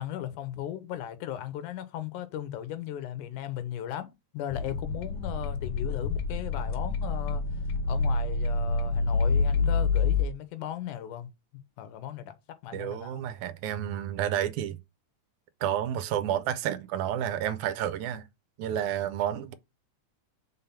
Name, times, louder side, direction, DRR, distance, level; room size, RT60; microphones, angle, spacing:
voice 1, 0.0-7.4 7.9-11.3 11.8-12.4 12.6-13.2 18.8-18.9, left 11 dB, 85° left, 2.3 m, -37 dB
sound 1, 4.5-10.3, left 4 dB, 70° left, 1.5 m, -27 dB
voice 2, 12.7-14.8 15.6-18.3 18.6-19.5, right 10 dB, 80° right, 1.9 m, -30 dB
5.5 x 3.8 x 5.7 m
omnidirectional pair, 3.6 m